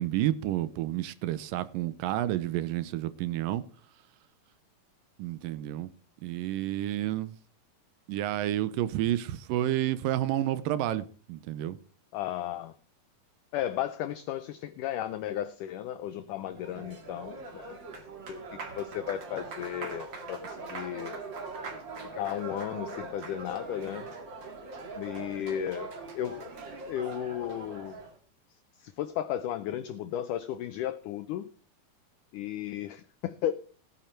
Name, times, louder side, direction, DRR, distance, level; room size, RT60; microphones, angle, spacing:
voice 1, 0.0-3.6 5.2-5.9 6.2-7.3 8.1-11.8, right 13 dB, 80° right, 2.1 m, -30 dB
voice 2, 12.1-12.7 13.5-17.8 18.3-20.4 20.7-21.2 22.1-24.1 25.0-25.9 26.1-26.5 26.9-28.0 28.8-31.5 32.3-33.5, left 11 dB, 80° left, 1.9 m, -34 dB
Applause, 16.3-28.2, right 3 dB, 40° right, 2.0 m, -41 dB
17.0 x 9.0 x 4.4 m
omnidirectional pair, 4.4 m